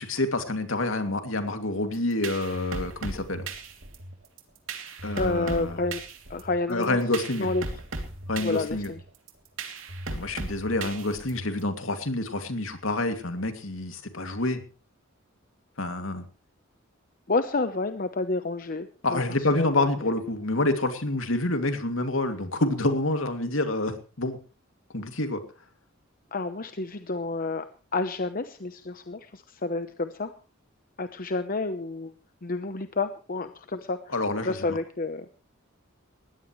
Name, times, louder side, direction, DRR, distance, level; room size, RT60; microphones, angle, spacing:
voice 1, 0.0-3.5 5.0-5.8 6.7-7.5 8.3-8.9 10.1-14.6 15.8-16.2 19.0-24.4 24.9-25.4 34.1-34.8, left 2 dB, 75° left, 6 dB, 2.6 m, -28 dB
sound 1, 1.9-11.6, right 3 dB, 75° right, 3.0 m, -37 dB
voice 2, 5.2-6.0 6.3-7.0 7.4-7.6 8.4-9.0 17.3-19.2 19.5-19.9 26.3-27.6 27.9-30.3 31.0-32.1 32.4-34.0 34.4-35.3, left 3 dB, 45° left, 9 dB, 0.9 m, -29 dB
20.5 x 16.5 x 3.2 m, 0.34 s
head